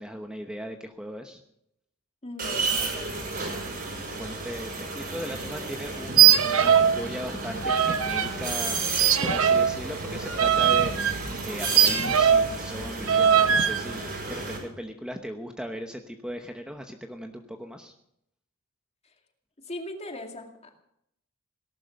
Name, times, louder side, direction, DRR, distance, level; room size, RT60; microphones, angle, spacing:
voice 1, 0.0-1.4 4.1-8.8 9.2-17.9, equal, 5° right, 4 dB, 1.0 m, -38 dB
voice 2, 2.2-3.2 19.6-20.8, left 1 dB, 30° left, 4 dB, 2.3 m, -39 dB
sound 1, 2.4-14.6, right 3 dB, 45° right, 5.9 m, -33 dB
sound 2, 6.1-7.0 7.2-8.3 9.0-12.6 13.1-13.8, right 8 dB, 70° right, 1.2 m, -21 dB
18.0 x 12.0 x 6.5 m, 0.77 s
head